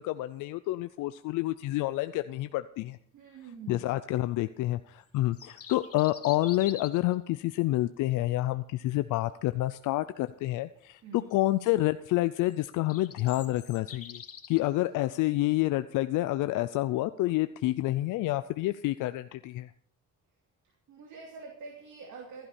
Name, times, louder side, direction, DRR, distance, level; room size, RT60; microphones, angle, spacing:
voice 1, 0.0-3.0 3.7-14.2 14.5-19.7, left 16 dB, 90° left, 12 dB, 0.5 m, -28 dB
voice 2, 3.1-3.9 11.0-11.3 20.9-22.5, right 4 dB, 75° right, 0 dB, 2.7 m, -46 dB
sound 1, 5.2-7.1 12.5-14.6, left 8 dB, 50° left, 1.5 m, -45 dB
15.5 x 12.0 x 4.3 m, 0.65 s
cardioid pair, 90°, 30 cm